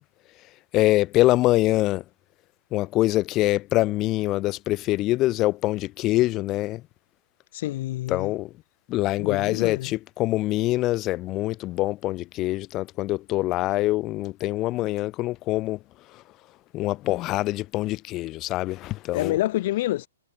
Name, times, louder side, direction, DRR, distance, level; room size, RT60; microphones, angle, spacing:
voice 1, 0.7-2.0 2.7-6.8 8.1-8.5 8.9-15.8 16.7-19.3, left 17 dB, 30° left, 0.9 m, -24 dB
voice 2, 7.5-8.3 9.2-9.9 19.1-20.1, left 16 dB, 50° left, 0.4 m, -27 dB
hypercardioid pair, 125°, 0 cm